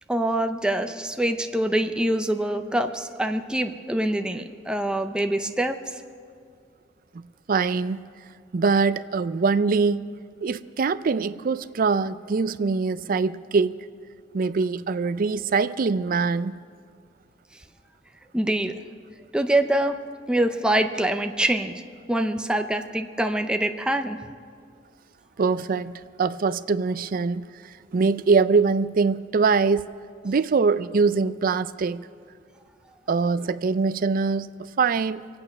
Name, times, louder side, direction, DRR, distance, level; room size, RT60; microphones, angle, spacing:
voice 1, 0.1-5.8 18.3-18.8 19.3-20.0 20.3-21.8 22.1-24.2, right 1 dB, 5° right, 0.6 m, -24 dB
voice 2, 7.5-8.0 8.5-10.1 10.4-13.8 14.3-16.6 25.4-27.5 27.9-29.9 30.2-32.1 33.1-34.5 34.8-35.2, right 4 dB, 50° right, 0.4 m, -23 dB
23.5 x 8.8 x 6.0 m
head